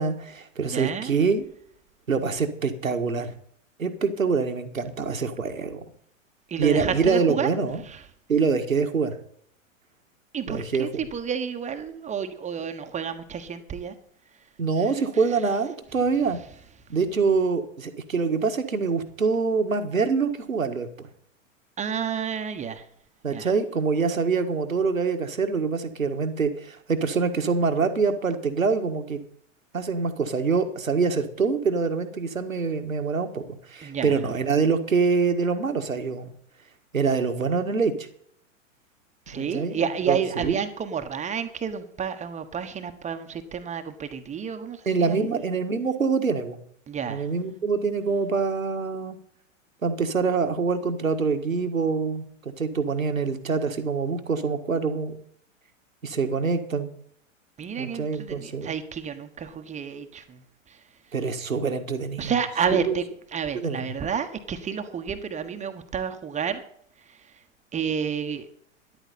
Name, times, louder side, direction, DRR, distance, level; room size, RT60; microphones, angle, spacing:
voice 1, 0.0-1.5 2.1-3.3 3.8-5.8 6.6-7.8 8.3-9.2 10.5-10.9 14.6-16.4 16.9-21.1 23.2-29.2 29.7-36.3 36.9-38.1 39.3-40.6 44.9-46.6 47.1-49.2 49.8-52.3 52.6-55.2 56.0-56.9 57.8-58.7 61.1-62.3 62.7-62.9 63.5-63.9, right 5 dB, 85° right, 7 dB, 1.7 m, -25 dB
voice 2, 0.6-1.1 6.5-7.5 7.8-8.0 10.3-13.9 21.8-22.8 23.3-23.5 33.8-34.2 39.3-45.3 46.9-47.3 57.6-60.4 60.7-60.8 62.2-63.1 63.3-66.6 67.1-67.3 67.7-68.5, right 7 dB, 20° right, 8 dB, 1.2 m, -30 dB
13.0 x 11.5 x 4.2 m, 0.65 s
figure-of-eight pair, 100°, 39 cm